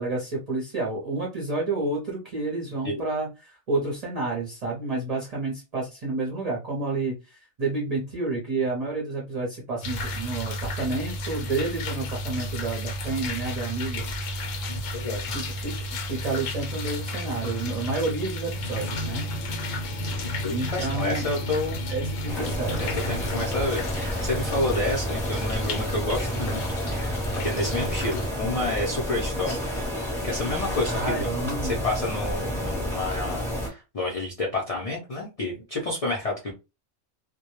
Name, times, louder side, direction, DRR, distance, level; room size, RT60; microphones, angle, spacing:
voice 1, 0.0-14.0 15.2-19.3 20.5-21.3 21.9-22.8 30.9-31.8, right 3 dB, 40° right, -3 dB, 0.6 m, -30 dB
sound 1, 9.8-28.3, equal, 80° left, 0.9 m, -32 dB
voice 2, 14.7-15.3 20.2-21.9 22.8-27.1 27.4-29.6 30.2-31.3 31.6-36.5, left 2 dB, 45° left, -2 dB, 0.4 m, -29 dB
sound 2, 22.3-33.7, left 1 dB, ahead, 0.7 m, -30 dB
2.2 x 2.1 x 2.9 m, 0.28 s
omnidirectional pair, 1.3 m